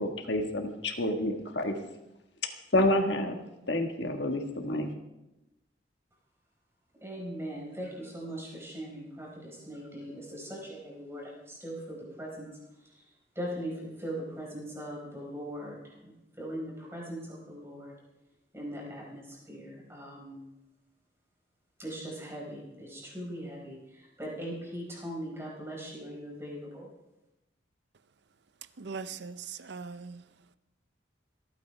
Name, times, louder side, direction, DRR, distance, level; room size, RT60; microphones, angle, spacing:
voice 1, 0.0-1.7 2.7-3.4 3.7-4.9, left 1 dB, 65° left, 1.5 m, -28 dB
voice 2, 6.9-13.1 13.3-17.9 18.5-20.4 21.8-26.9, equal, 15° right, 4.6 m, -40 dB
voice 3, 28.8-30.2, right 5 dB, 65° right, 0.6 m, -40 dB
27.0 x 9.2 x 3.4 m
head